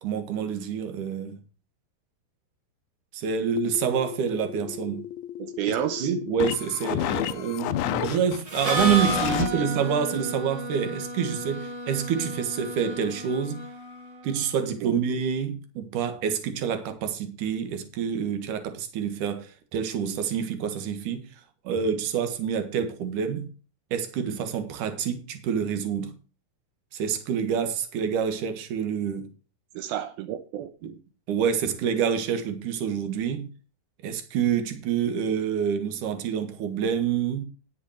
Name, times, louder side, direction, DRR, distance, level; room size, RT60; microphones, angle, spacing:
voice 1, 0.0-1.4 3.1-5.0 6.0-13.6 14.2-21.3 21.6-23.5 23.9-26.1 26.9-29.3 30.8-30.9 31.3-33.5 34.0-37.4, right 7 dB, 60° right, 2.9 m, -27 dB
sound 1, 3.6-9.5, left 13 dB, 80° left, 2.4 m, -31 dB
voice 2, 5.4-6.1 9.1-9.7 14.8-14.9 29.7-30.7, right 11 dB, 85° right, 2.7 m, -31 dB
Harmonica, 8.5-14.2, right 2 dB, 25° right, 3.1 m, -32 dB
10.0 x 8.5 x 4.9 m
omnidirectional pair, 4.3 m